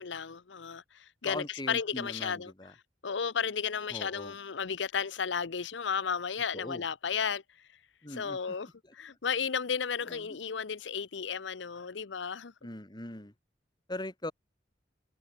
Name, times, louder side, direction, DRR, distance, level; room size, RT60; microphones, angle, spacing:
voice 1, 0.0-2.5 3.0-7.4 8.1-12.5, left 6 dB, 80° left, 0.7 m, -33 dB
voice 2, 1.2-2.7 3.9-4.3 6.5-6.8 8.0-8.9 10.1-10.4 12.6-13.3 13.9-14.3, left 1 dB, 25° left, 2.4 m, -41 dB
head